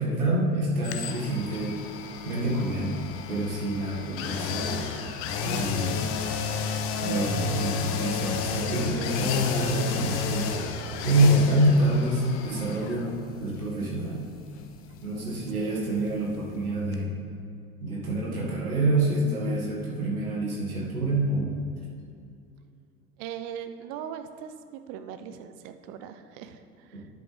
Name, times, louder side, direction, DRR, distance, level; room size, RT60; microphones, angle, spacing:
voice 1, 0.0-1.8 2.3-4.8 5.4-6.0 7.0-10.5 11.0-13.1 13.4-14.2 15.0-17.1 17.8-21.6, right 1 dB, 75° right, -4 dB, 2.0 m, -26 dB
sound 1, 0.8-16.6 16.9-17.0, left 5 dB, 30° left, 0.7 m, -32 dB
voice 2, 23.2-27.1, right 8 dB, 30° right, 9 dB, 0.5 m, -40 dB
10.0 x 7.8 x 3.4 m, 2.5 s
figure-of-eight pair, 85°, 43 cm